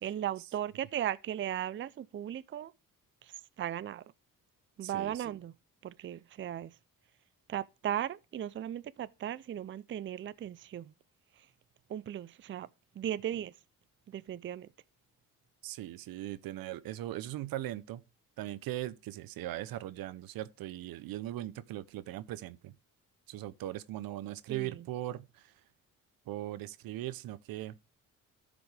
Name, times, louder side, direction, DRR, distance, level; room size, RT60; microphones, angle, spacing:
voice 1, 0.0-2.7 3.2-4.0 4.8-5.5 5.8-6.8 7.5-10.9 11.4-11.5 11.9-12.7 13.0-13.5 14.1-14.7 24.5-24.8, right 11 dB, 35° right, 0.5 m, -37 dB
voice 2, 4.8-5.4 15.6-18.0 18.4-22.7 23.3-25.5 26.3-27.7, right 14 dB, 85° right, 0.7 m, -39 dB
13.5 x 5.1 x 3.3 m
cardioid pair, 90°, 34 cm